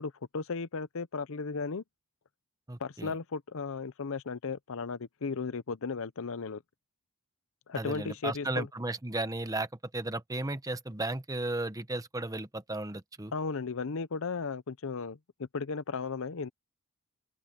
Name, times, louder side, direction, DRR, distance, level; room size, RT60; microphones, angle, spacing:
voice 1, 0.0-1.8 2.8-6.6 7.7-8.7 13.3-16.5, left 4 dB, 65° left, 0.7 m, -35 dB
voice 2, 2.7-3.1 7.7-9.7 9.9-13.3, right 2 dB, 15° right, 1.1 m, -34 dB
open air
head